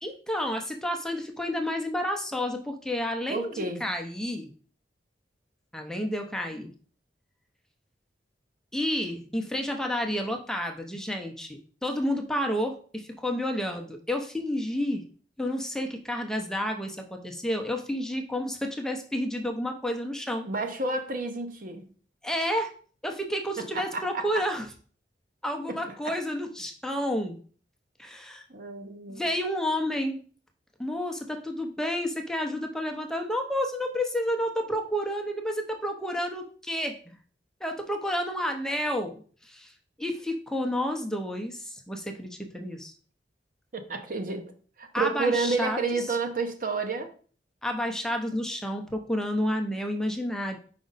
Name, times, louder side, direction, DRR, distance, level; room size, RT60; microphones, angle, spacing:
voice 1, 0.0-4.5 5.7-6.7 8.7-15.0 15.4-20.5 22.2-22.7 23.0-24.7 25.4-27.4 28.0-28.4 29.1-30.2 30.8-37.1 37.6-39.7 40.0-42.9 44.9-45.8 47.6-50.6, equal, 5° left, 0.7 m, -30 dB
voice 2, 3.3-3.8 20.4-21.9 23.7-24.4 25.7-25.9 28.5-29.2 43.7-44.5 44.8-47.1, right 3 dB, 50° right, 0.8 m, -30 dB
5.1 x 4.8 x 4.0 m
head